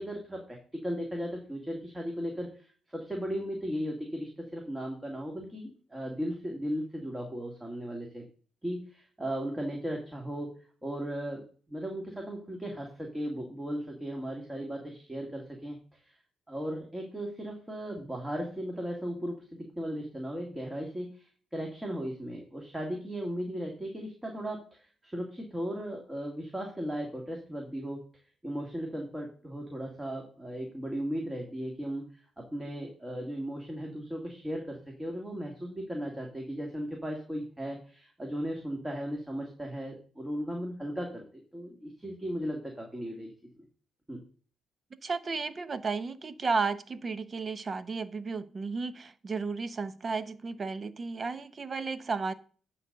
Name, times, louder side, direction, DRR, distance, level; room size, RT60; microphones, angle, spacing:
voice 1, 0.0-8.2 8.6-16.2 16.5-28.0 28.4-32.3 32.5-41.3 41.5-43.3 43.6-43.7 44.1-44.2, equal, 15° right, 2.2 m, -36 dB
voice 2, 45.0-52.3, right 4 dB, 35° right, 0.8 m, -33 dB
9.8 x 4.1 x 6.6 m
cardioid pair, 90°, 0 cm